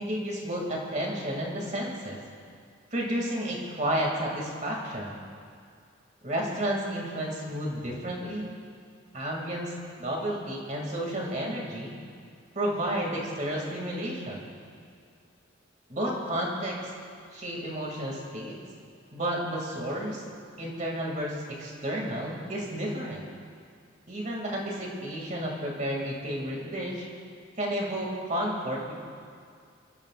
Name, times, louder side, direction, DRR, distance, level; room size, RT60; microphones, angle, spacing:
voice 1, 0.0-2.2 2.9-5.2 6.2-8.6 9.1-9.7 10.0-11.9 12.5-14.5 15.9-16.9 17.3-18.6 19.1-20.2 20.6-23.2 24.1-27.1 27.6-28.9, equal, 35° right, -2 dB, 2.6 m, -31 dB
26.5 x 14.0 x 2.5 m, 2.3 s
head